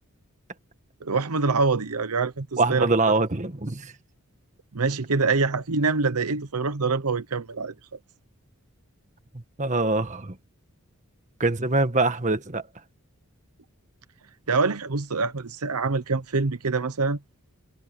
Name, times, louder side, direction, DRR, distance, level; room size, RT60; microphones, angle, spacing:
voice 1, 1.0-3.2 4.7-7.7 14.5-17.2, right 4 dB, 85° right, 0.9 m, -25 dB
voice 2, 2.6-3.9 9.3-10.4 11.4-12.6, right 2 dB, 35° right, 1.6 m, -24 dB
head